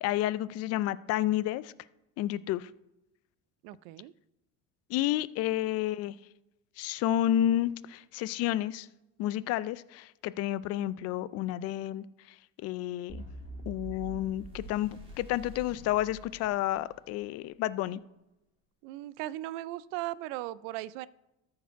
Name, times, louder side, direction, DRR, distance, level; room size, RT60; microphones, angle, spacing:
voice 1, 0.0-1.7 2.2-2.7 4.9-6.2 6.8-8.9 9.2-12.0 12.6-13.2 13.7-18.0, left 13 dB, 50° left, 17 dB, 0.4 m, -30 dB
voice 2, 3.6-4.1 18.8-21.1, right 16 dB, 75° right, 19 dB, 0.5 m, -37 dB
sound 1, 13.1-17.2, right 2 dB, 15° right, 2.1 m, -45 dB
13.5 x 4.8 x 4.5 m, 0.93 s
supercardioid pair, 120°, 32 cm